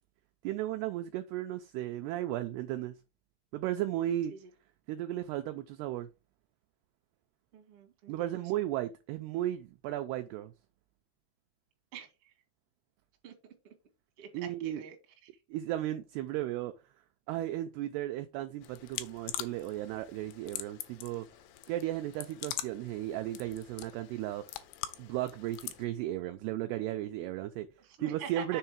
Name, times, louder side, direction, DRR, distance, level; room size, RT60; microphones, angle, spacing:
voice 1, 0.4-2.9 3.5-4.3 4.9-6.1 8.1-10.5 14.3-14.8 15.5-16.7 17.3-21.3 21.7-24.4 25.0-27.7 28.0-28.6, right 13 dB, 85° right, 2.3 m, -35 dB
voice 2, 7.5-8.4 11.9-12.3 13.2-13.3 13.6-13.7 14.2-15.0 15.2-15.3 27.8-28.6, right 7 dB, 70° right, 1.4 m, -46 dB
sound 1, 18.6-25.9, left 13 dB, 85° left, 2.6 m, -43 dB
6.6 x 3.9 x 5.9 m
omnidirectional pair, 5.3 m